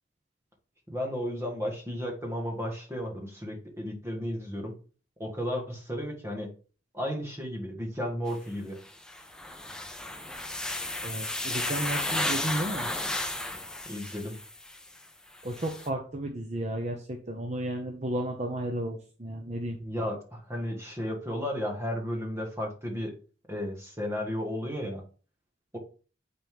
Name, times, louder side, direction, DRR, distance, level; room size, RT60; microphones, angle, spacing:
voice 1, 0.9-4.7 5.2-6.5 6.9-8.8 13.9-14.4 19.8-23.2 23.5-25.0, equal, 15° right, 1 dB, 1.8 m, -33 dB
sound 1, 8.3-8.4 8.9-15.0 15.3-15.9, left 1 dB, 5° left, 0.7 m, -33 dB
voice 2, 11.0-12.9 15.4-19.8, right 1 dB, 35° right, 3 dB, 0.9 m, -33 dB
9.1 x 4.3 x 3.7 m, 0.37 s
head